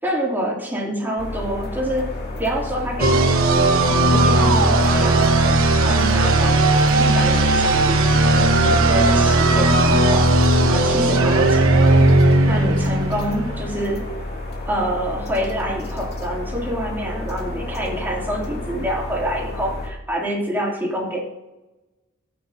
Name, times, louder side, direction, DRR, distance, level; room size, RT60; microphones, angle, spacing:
voice 1, 0.0-2.1 2.4-10.4 10.6-12.1 12.5-14.0 14.7-21.2, equal, 10° right, -3 dB, 3.0 m, -27 dB
sound 1, 1.2-19.9, left 2 dB, 50° left, 2.6 m, -31 dB
sound 2, 3.0-13.6, right 2 dB, 75° right, 1.3 m, -16 dB
18.0 x 9.3 x 2.8 m, 1.0 s
head